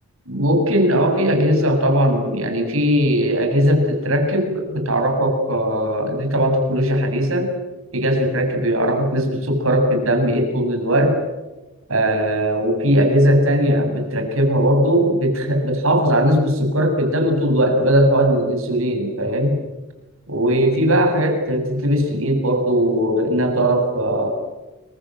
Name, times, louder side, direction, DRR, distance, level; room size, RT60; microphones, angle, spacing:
voice 1, 0.3-7.5 7.9-11.2 11.9-19.6 20.3-24.3, equal, 70° right, 5 dB, 7.5 m, -19 dB
29.5 x 23.5 x 7.8 m, 1.1 s
head